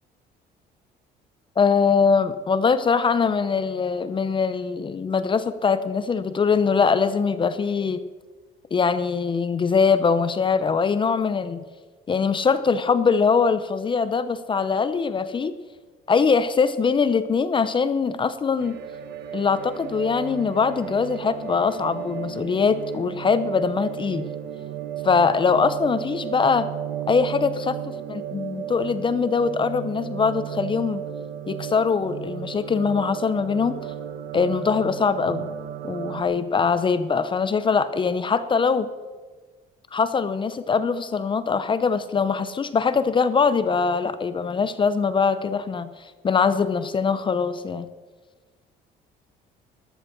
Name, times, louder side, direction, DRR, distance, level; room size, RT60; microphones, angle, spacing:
voice 1, 1.6-8.0 8.7-11.6 12.1-15.6 16.1-18.8 19.3-24.3 25.0-26.7 27.1-31.0 31.5-33.8 34.3-35.5 35.8-38.9 39.9-45.9 46.2-47.9, left 5 dB, 30° left, 13 dB, 0.7 m, -22 dB
sound 1, 18.6-36.2, right 9 dB, 75° right, 1.0 m, -34 dB
13.5 x 13.0 x 4.5 m, 1.4 s
cardioid pair, 110°, 17 cm